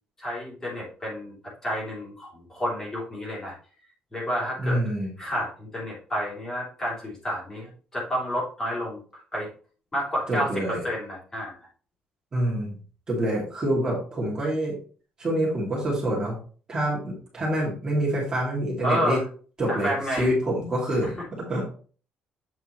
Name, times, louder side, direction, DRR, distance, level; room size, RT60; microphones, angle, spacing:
voice 1, 0.2-1.3 1.6-3.5 4.1-4.8 5.2-9.5 9.9-11.6 18.8-19.2 19.7-20.3, equal, 15° left, -4 dB, 3.2 m, -30 dB
voice 2, 4.6-5.1 10.3-10.8 12.3-12.8 13.1-14.8 15.2-16.3 16.7-19.2 19.6-21.1 21.5-21.7, right 1 dB, 25° right, -5 dB, 2.5 m, -26 dB
7.9 x 5.7 x 3.1 m, 0.41 s
cardioid pair, 165°, 3 cm